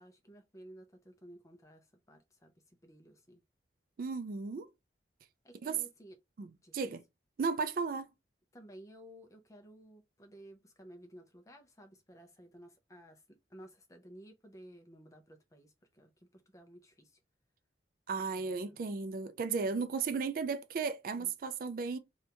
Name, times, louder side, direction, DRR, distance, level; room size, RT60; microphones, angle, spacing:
voice 1, 0.0-3.4 5.4-6.2 6.6-6.8 8.5-17.2 18.3-18.8 21.1-21.3, equal, 20° left, 0.7 m, -55 dB
voice 2, 4.0-4.7 5.6-5.8 6.4-7.0 7.4-8.1 18.1-22.0, right 5 dB, 50° right, 0.3 m, -35 dB
2.9 x 2.6 x 3.3 m
head